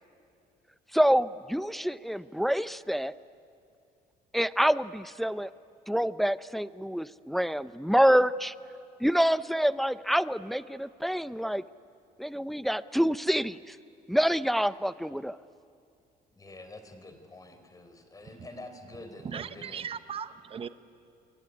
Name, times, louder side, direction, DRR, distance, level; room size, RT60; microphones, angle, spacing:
voice 1, 0.9-3.1 4.3-5.5 5.9-8.5 9.0-11.6 12.2-13.8 14.1-15.4, equal, ahead, 15 dB, 0.6 m, -26 dB
voice 2, 16.3-19.9, left 2 dB, 20° left, 7 dB, 4.0 m, -47 dB
voice 3, 19.2-20.7, right 7 dB, 35° right, 11 dB, 0.9 m, -38 dB
27.0 x 22.5 x 9.8 m, 2.4 s
cardioid pair, 110°, 17 cm